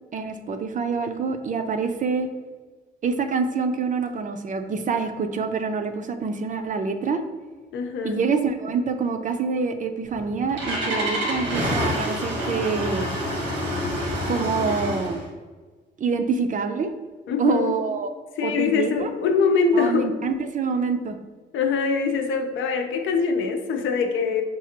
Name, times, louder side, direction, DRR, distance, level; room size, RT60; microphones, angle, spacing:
voice 1, 0.1-2.3 3.0-7.2 8.0-13.1 14.3-15.2 16.0-16.9 17.4-18.1 18.4-19.1 19.7-21.2, right 5 dB, 40° right, 7 dB, 0.5 m, -26 dB
voice 2, 7.7-8.2 17.3-17.7 18.4-20.2 21.5-24.4, left 5 dB, 80° left, 5 dB, 0.6 m, -23 dB
Engine starting, 10.0-15.2, equal, 90° right, 1.4 m, -27 dB
6.0 x 2.4 x 2.9 m, 1.4 s
cardioid pair, 90°, 20 cm